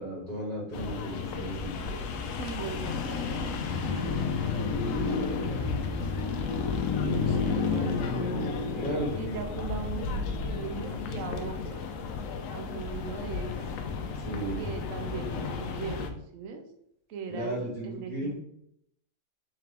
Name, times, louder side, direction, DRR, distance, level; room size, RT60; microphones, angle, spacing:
voice 1, 0.0-1.7 6.9-7.7 8.7-9.4 14.1-14.6 17.3-18.3, right 1 dB, 25° right, -9 dB, 1.7 m, -35 dB
sound 1, 0.7-16.1, left 5 dB, 70° left, 0.9 m, -32 dB
voice 2, 2.3-5.7 6.0-6.3 7.2-8.5 9.1-11.9 12.5-13.7 14.6-16.6 17.1-18.4, right 5 dB, 70° right, 6 dB, 1.0 m, -40 dB
3.7 x 3.4 x 3.3 m, 0.74 s
omnidirectional pair, 1.5 m